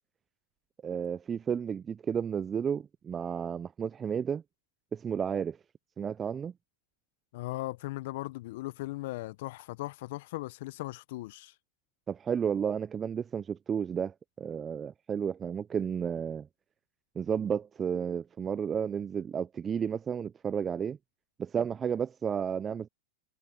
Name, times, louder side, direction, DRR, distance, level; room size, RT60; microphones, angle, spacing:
voice 1, 0.8-4.4 4.9-5.6 6.0-6.5 12.1-16.5 17.2-21.0 21.4-22.9, right 7 dB, 25° right, 0.4 m, -32 dB
voice 2, 7.3-11.5, left 19 dB, 60° left, 0.9 m, -38 dB
hypercardioid pair, 105°, 0 cm